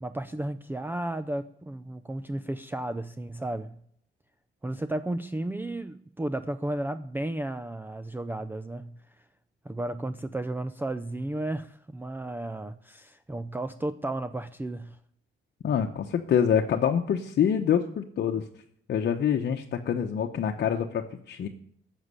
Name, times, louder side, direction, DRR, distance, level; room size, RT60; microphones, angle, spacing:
voice 1, 0.0-3.8 4.6-9.0 9.6-15.0, right 1 dB, 10° right, 0.5 m, -33 dB
voice 2, 15.6-18.4 18.9-21.5, left 8 dB, 60° left, 1.0 m, -26 dB
12.5 x 7.4 x 9.7 m
cardioid pair, 90°, 20 cm